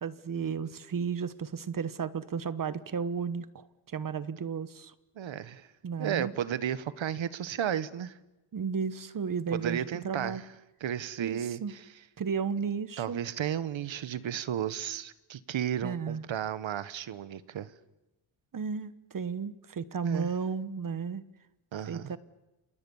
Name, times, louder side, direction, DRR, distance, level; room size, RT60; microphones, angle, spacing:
voice 1, 0.0-4.9 5.8-6.3 8.5-10.4 11.2-11.7 12.2-13.2 15.8-16.2 18.5-21.2 21.9-22.2, right 6 dB, 40° right, 1.2 m, -33 dB
voice 2, 5.1-5.7 6.0-8.1 9.5-10.4 10.8-11.8 13.0-17.7 20.0-20.3 21.7-22.1, right 9 dB, 65° right, 1.4 m, -33 dB
28.5 x 28.5 x 7.2 m
wide cardioid pair, 150°, 48 cm